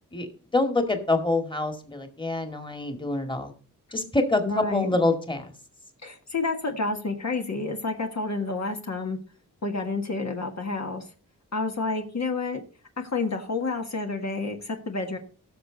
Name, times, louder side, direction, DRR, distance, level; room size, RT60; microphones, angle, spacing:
voice 1, 0.5-3.5 3.9-5.5, left 2 dB, 15° left, 5 dB, 2.1 m, -26 dB
voice 2, 4.4-5.0 6.0-9.2 9.6-11.1 11.5-12.6 13.0-15.2, left 3 dB, 50° left, 3 dB, 1.6 m, -29 dB
17.0 x 6.7 x 4.0 m, 0.37 s
wide cardioid pair, 90°, 34 cm